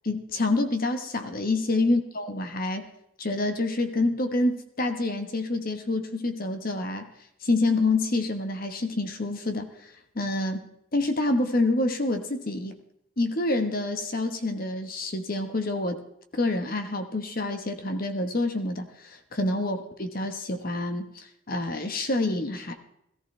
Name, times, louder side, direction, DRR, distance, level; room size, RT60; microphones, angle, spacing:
voice 1, 0.0-2.9 3.2-7.1 7.4-9.7 10.1-10.6 10.9-12.8 13.2-16.0 16.3-22.7, left 2 dB, 45° left, 7 dB, 1.2 m, -27 dB
18.0 x 14.0 x 3.3 m, 0.78 s
head